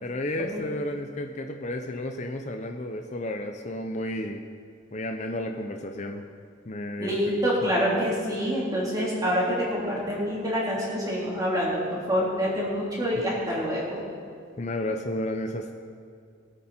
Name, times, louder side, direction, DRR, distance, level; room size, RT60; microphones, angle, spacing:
voice 1, 0.0-4.4 4.9-6.2 6.7-7.7 14.6-15.7, left 1 dB, 35° left, 4 dB, 0.7 m, -32 dB
voice 2, 7.0-14.0, equal, 20° right, -6 dB, 3.6 m, -26 dB
21.0 x 8.7 x 4.4 m, 2.3 s
head